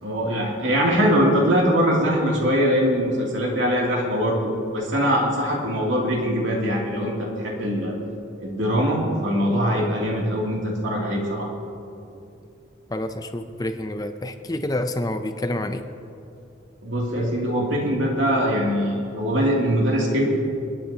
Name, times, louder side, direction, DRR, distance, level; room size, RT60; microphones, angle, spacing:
voice 1, 0.0-7.9 8.4-11.5 16.8-20.3, equal, 75° right, -3 dB, 2.8 m, -22 dB
voice 2, 12.9-15.8, left 1 dB, 20° left, 8 dB, 0.5 m, -28 dB
28.5 x 9.8 x 2.9 m, 2.6 s
head